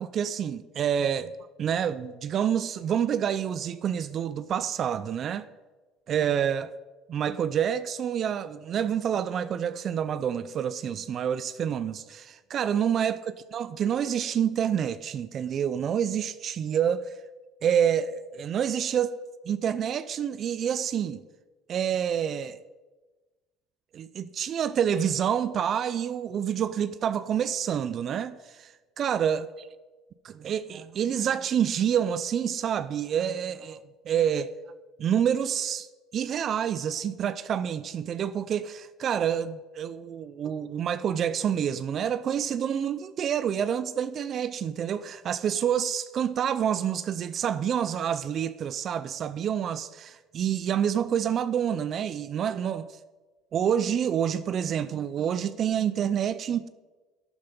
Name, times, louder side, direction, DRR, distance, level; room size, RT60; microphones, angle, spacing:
voice 1, 0.0-5.5 6.1-6.7 7.1-17.2 17.6-19.2 19.5-21.2 21.7-22.6 23.9-29.5 30.2-33.8 34.1-34.5 35.0-35.9 36.1-53.0 53.5-56.7, right 8 dB, 50° right, 0.5 m, -28 dB
11.0 x 8.8 x 5.4 m
supercardioid pair, 95°, 0 cm